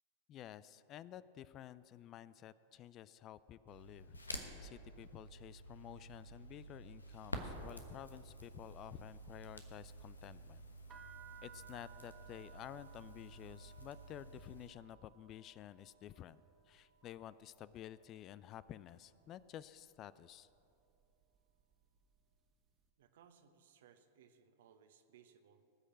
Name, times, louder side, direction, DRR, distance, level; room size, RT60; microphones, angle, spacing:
voice 1, 0.3-10.6 11.4-16.4 16.7-20.5, left 11 dB, 35° left, 17 dB, 0.4 m, -52 dB
Crackle, 3.7-14.7, equal, 90° left, 1.2 m, -50 dB
sound 1, 10.9-18.8 19.0-19.7 20.3-20.6 20.9-22.3, right 9 dB, 30° right, 1.5 m, -62 dB
voice 2, 23.0-25.6, right 8 dB, 65° right, 9 dB, 1.0 m, -65 dB
19.0 x 6.5 x 7.5 m, 2.7 s
figure-of-eight pair, 95°, 0 cm